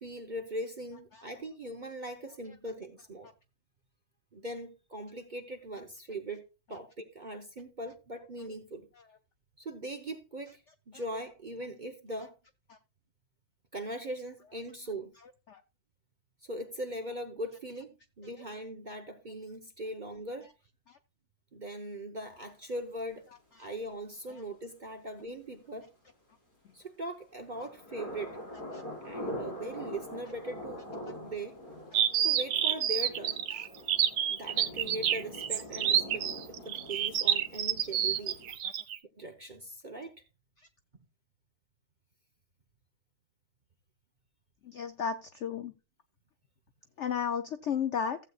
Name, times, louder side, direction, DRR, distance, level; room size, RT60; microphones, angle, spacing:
voice 1, 0.0-3.3 4.3-8.9 9.6-12.3 13.7-15.1 16.4-20.5 21.5-23.3 23.6-25.9 26.7-28.4 29.0-30.8 31.2-31.6 32.2-33.4 34.3-38.4 39.2-40.1, right 1 dB, 40° right, 0.7 m, -40 dB
sound 1, 27.4-38.5, left 1 dB, 50° left, 6.6 m, -44 dB
sound 2, 31.9-39.0, right 10 dB, 65° right, 1.2 m, -28 dB
voice 2, 44.6-45.7 47.0-48.2, left 7 dB, 90° left, 0.6 m, -34 dB
15.5 x 7.9 x 2.4 m
omnidirectional pair, 2.0 m